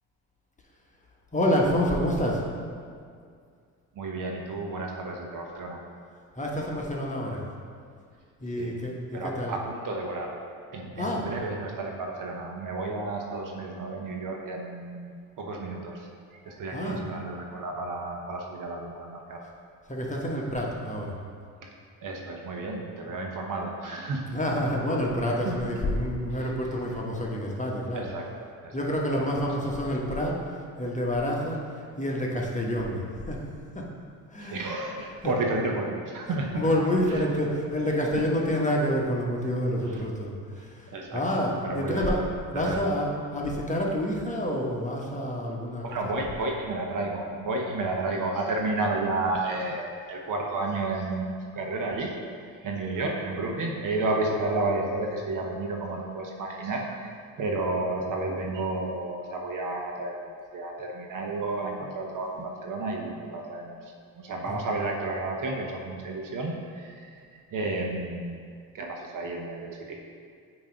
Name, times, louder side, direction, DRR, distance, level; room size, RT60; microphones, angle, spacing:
voice 1, 1.3-2.4 6.4-7.4 8.4-9.6 10.9-11.3 16.7-17.1 19.9-21.2 24.3-28.1 28.7-33.4 33.7-33.9 34.3-34.7 35.2-35.4 36.2-46.1 64.4-64.6, equal, 20° left, -2 dB, 1.3 m, -28 dB
voice 2, 3.9-5.8 8.6-8.7 9.1-10.3 10.7-19.4 22.0-24.2 25.4-25.6 26.4-26.5 27.9-28.7 29.2-29.3 34.4-36.7 37.1-37.2 40.9-41.2 41.6-42.3 42.5-42.9 43.3-43.4 45.8-52.1 52.6-57.1 57.4-63.8 64.1-68.4 68.7-70.0, right 2 dB, 50° right, 0 dB, 1.1 m, -32 dB
8.5 x 3.1 x 5.1 m, 2.2 s
hypercardioid pair, 60°, 41 cm